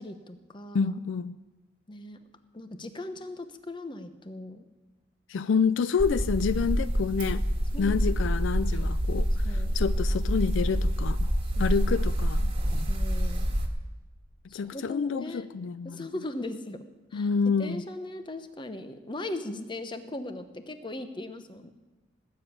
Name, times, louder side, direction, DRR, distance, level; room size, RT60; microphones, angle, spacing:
voice 1, 0.0-0.9 1.9-2.2 2.5-4.6 7.7-8.0 9.4-9.8 11.4-11.7 12.9-13.5 14.5-15.5 15.8-16.8 17.1-17.3 17.6-21.7, left 1 dB, 25° left, 1.0 m, -39 dB
voice 2, 0.7-1.4 5.3-7.5 7.8-11.3 11.6-12.5 14.5-16.1 17.1-17.8, left 5 dB, 75° left, 0.4 m, -28 dB
sound 1, 6.0-13.7, equal, 30° right, 1.6 m, -27 dB
19.0 x 7.1 x 8.8 m
head